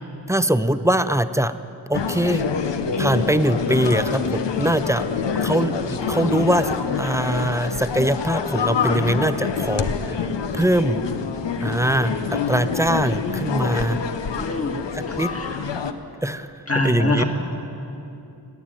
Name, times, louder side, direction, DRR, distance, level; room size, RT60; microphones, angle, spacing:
voice 1, 0.3-1.5 1.9-2.5 3.0-5.0 5.4-10.3 10.5-11.0 11.6-12.2 12.5-14.0 14.9-15.3 16.2-16.5 16.8-17.2, right 1 dB, 5° right, 12 dB, 0.5 m, -22 dB
sound 1, 1.9-15.9, left 6 dB, 80° left, 0.8 m, -26 dB
voice 2, 14.3-14.8 15.1-15.6 16.7-17.2, left 1 dB, 35° left, 3 dB, 1.9 m, -24 dB
17.0 x 9.1 x 9.0 m, 2.8 s
wide cardioid pair, 55°, 42 cm